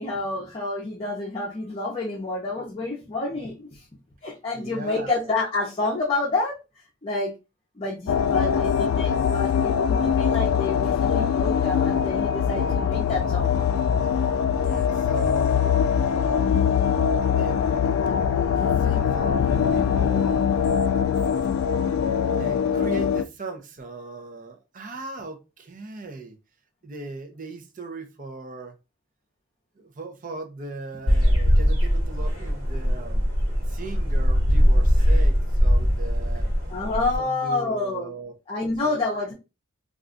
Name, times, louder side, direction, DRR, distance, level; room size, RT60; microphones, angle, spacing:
voice 1, 0.0-3.8 4.2-6.6 7.0-7.3 7.8-13.5 36.7-38.1 38.5-39.3, left 3 dB, 25° left, 0.6 m, -28 dB
voice 2, 4.5-5.3 14.6-15.8 17.3-17.6 18.8-20.5 22.4-26.4 26.8-28.8 29.8-33.3 33.7-36.5 37.2-38.3 38.8-39.3, right 3 dB, 40° right, 0.6 m, -38 dB
sound 1, 8.1-23.2, left 7 dB, 85° left, 0.3 m, -22 dB
sound 2, 31.1-37.2, equal, 60° right, 1.3 m, -21 dB
2.4 x 2.3 x 3.7 m
head